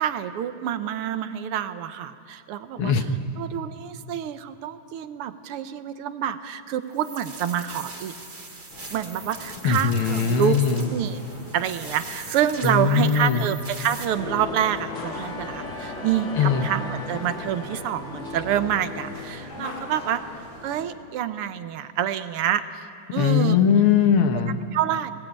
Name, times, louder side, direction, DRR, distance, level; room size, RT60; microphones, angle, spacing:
voice 1, 0.0-2.9 3.4-8.1 8.9-10.5 10.9-11.2 11.5-20.2 20.6-22.6 23.1-23.6 24.7-25.1, right 10 dB, 85° right, 11 dB, 1.9 m, -27 dB
voice 2, 2.8-3.2 9.6-10.9 12.6-13.5 16.4-16.6 23.2-24.6, left 6 dB, 75° left, 7 dB, 2.1 m, -20 dB
sound 1, 6.9-14.0, right 3 dB, 30° right, 2.4 m, -41 dB
sound 2, 8.7-20.9, left 2 dB, 60° left, 3.6 m, -43 dB
sound 3, 14.2-19.6, left 3 dB, 35° left, 2.3 m, -36 dB
26.0 x 18.5 x 8.8 m, 2.5 s
omnidirectional pair, 2.4 m